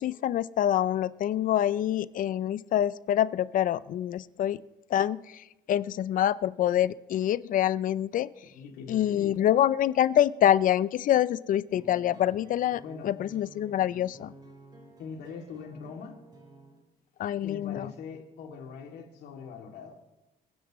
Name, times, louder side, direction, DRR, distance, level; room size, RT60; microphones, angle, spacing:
voice 1, 0.0-4.6 4.9-8.3 8.9-14.3 17.2-17.9, left 11 dB, 55° left, 18 dB, 0.4 m, -26 dB
voice 2, 8.5-9.4 12.8-13.1 15.0-16.2 17.4-20.0, left 6 dB, 75° left, 2 dB, 2.5 m, -42 dB
sound 1, 11.7-16.8, equal, 25° right, 4.5 m, -52 dB
29.0 x 10.0 x 3.1 m, 0.97 s
cardioid pair, 110°, 17 cm